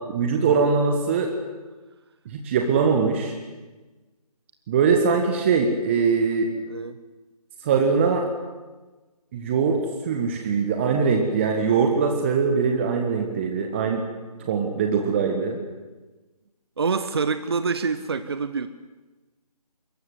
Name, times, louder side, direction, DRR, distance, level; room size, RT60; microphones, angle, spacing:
voice 1, 0.1-1.3 2.3-3.3 4.7-6.5 7.6-8.3 9.3-9.8 10.0-14.0 14.5-15.6, right 5 dB, 20° right, 3 dB, 1.7 m, -22 dB
voice 2, 6.7-7.0 16.8-18.7, right 5 dB, 40° right, 11 dB, 1.0 m, -26 dB
27.5 x 22.5 x 8.0 m, 1.2 s
figure-of-eight pair, 155°, 20 cm